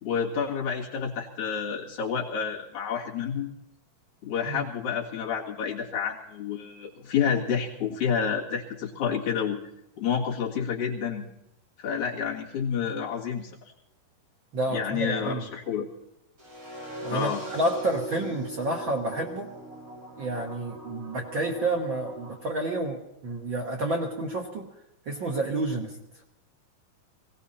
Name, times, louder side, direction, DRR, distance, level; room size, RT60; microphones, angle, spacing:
voice 1, 0.0-3.5 4.2-9.6 10.0-11.2 11.8-13.5 14.7-15.9 17.1-17.4, left 7 dB, 55° left, -2 dB, 3.1 m, -29 dB
voice 2, 14.5-15.4 17.0-19.5 20.2-24.7 25.1-25.9, right 2 dB, 55° right, 1 dB, 1.3 m, -29 dB
sound 1, 16.4-22.4, right 2 dB, 20° right, 4.9 m, -41 dB
19.0 x 17.5 x 4.2 m, 0.82 s
omnidirectional pair, 4.3 m